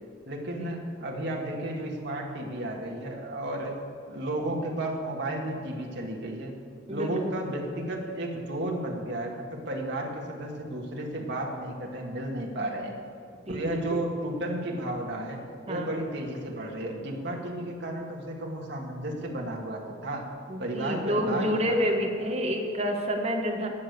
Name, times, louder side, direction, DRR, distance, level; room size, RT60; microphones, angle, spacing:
voice 1, 0.3-3.8 4.1-6.5 6.9-12.9 13.5-15.4 15.7-20.3 20.6-22.3, right 1 dB, 60° right, 0 dB, 1.9 m, -33 dB
voice 2, 6.9-7.4 13.5-14.0 15.7-15.9 20.5-23.7, equal, 35° right, 1 dB, 1.6 m, -29 dB
18.0 x 6.6 x 6.7 m, 2.4 s
head